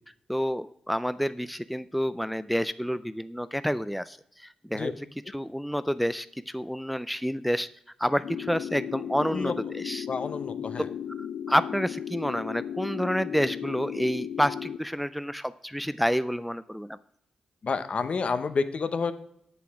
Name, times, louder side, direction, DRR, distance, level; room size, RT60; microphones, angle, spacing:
voice 1, 0.3-5.1 5.3-7.7 8.0-10.1 11.2-17.0, equal, ahead, 14 dB, 0.3 m, -29 dB
sound 1, 8.2-14.8, left 8 dB, 80° left, 0.4 m, -35 dB
voice 2, 10.1-10.9 17.6-19.1, left 4 dB, 55° left, 11 dB, 0.8 m, -29 dB
7.6 x 7.0 x 4.8 m, 0.74 s
supercardioid pair, 50°, 2 cm